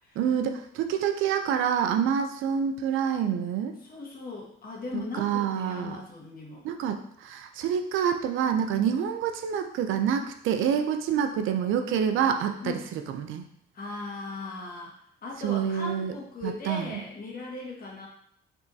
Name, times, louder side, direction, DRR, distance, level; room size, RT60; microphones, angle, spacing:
voice 1, 0.2-3.8 4.9-6.0 6.6-13.4 15.4-16.1 16.4-17.0, right 8 dB, 85° right, 6 dB, 0.5 m, -27 dB
voice 2, 3.8-6.6 12.6-12.8 13.7-18.1, left 3 dB, 45° left, -2 dB, 1.4 m, -38 dB
5.0 x 3.6 x 2.7 m, 0.66 s
cardioid pair, 90°, 20 cm